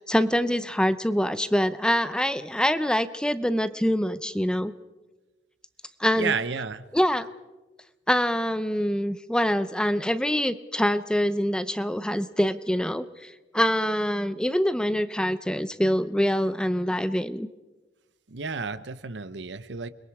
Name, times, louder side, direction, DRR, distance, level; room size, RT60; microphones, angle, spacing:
voice 1, 0.0-4.7 6.0-6.3 6.9-7.3 8.1-17.5, equal, 5° left, 13 dB, 0.6 m, -25 dB
voice 2, 6.1-6.9 18.3-19.9, right 5 dB, 80° right, 14 dB, 0.9 m, -31 dB
29.5 x 21.5 x 4.8 m, 1.2 s
head